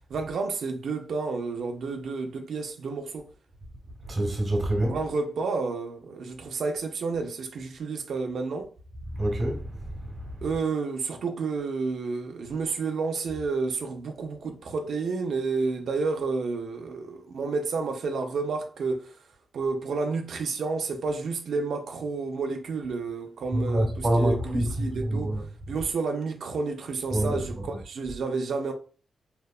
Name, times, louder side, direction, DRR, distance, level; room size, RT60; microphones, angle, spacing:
voice 1, 0.1-3.3 4.9-8.7 10.4-19.2 19.5-25.3 25.7-28.7, right 4 dB, 80° right, 0.3 m, -30 dB
voice 2, 4.1-5.0 9.1-10.4 23.5-25.4 27.1-27.6, right 1 dB, 40° right, 1.0 m, -27 dB
2.7 x 2.0 x 2.2 m
cardioid pair, 65°, 0 cm